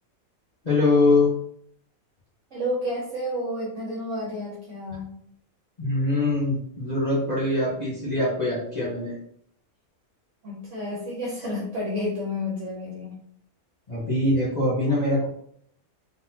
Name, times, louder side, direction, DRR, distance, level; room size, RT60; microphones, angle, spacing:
voice 1, 0.6-1.3 5.8-9.2 13.9-15.2, left 2 dB, 30° left, -9 dB, 1.3 m, -23 dB
voice 2, 2.5-5.1 10.4-13.1, left 1 dB, 60° right, -5 dB, 1.3 m, -30 dB
3.9 x 3.8 x 2.8 m, 0.66 s
omnidirectional pair, 1.5 m